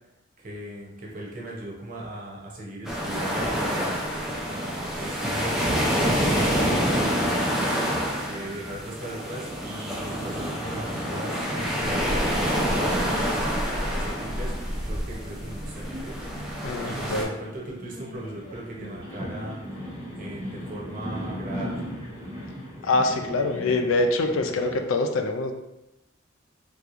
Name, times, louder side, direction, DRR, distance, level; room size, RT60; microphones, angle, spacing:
voice 1, 0.4-7.5 8.2-12.5 12.8-13.3 13.8-14.5 14.8-16.2 16.8-19.9 20.1-21.9, right 1 dB, 40° right, -3 dB, 0.8 m, -38 dB
sound 1, 2.8-17.2, equal, 5° right, 0.4 m, -27 dB
sound 2, 13.2-24.8, equal, 35° left, 1.2 m, -39 dB
voice 2, 16.6-17.3 22.8-25.5, left 2 dB, 70° left, 5 dB, 0.4 m, -24 dB
3.4 x 3.0 x 2.5 m, 0.91 s
head